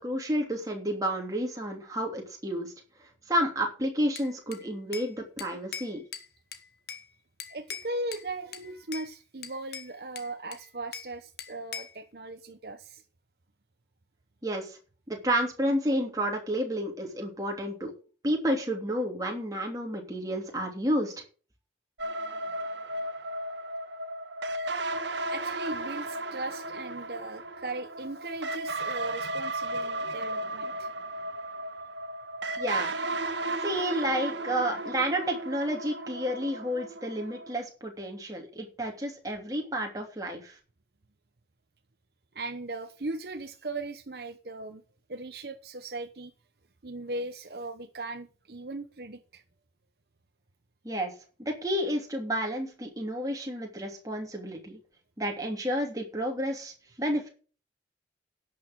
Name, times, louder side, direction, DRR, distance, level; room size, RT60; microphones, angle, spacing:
voice 1, 0.0-2.7 3.3-6.0 14.4-14.8 15.1-17.9 18.2-21.1 32.6-32.9 33.6-40.5 50.8-51.1 51.4-54.8 55.2-56.7 57.0-57.3, equal, 20° right, 3.0 m, -30 dB
Bell / Glass, 4.2-5.1 5.4-7.1 7.4-8.3 8.5-9.1 9.4-11.1 11.4-12.0, left 7 dB, 60° left, 1.3 m, -42 dB
voice 2, 7.5-13.0 25.3-30.9 42.3-44.8 45.1-46.3 46.8-49.4, right 2 dB, 55° right, 0.9 m, -38 dB
sound 1, 22.0-37.5, right 2 dB, 75° right, 1.4 m, -35 dB
11.0 x 6.6 x 7.7 m
head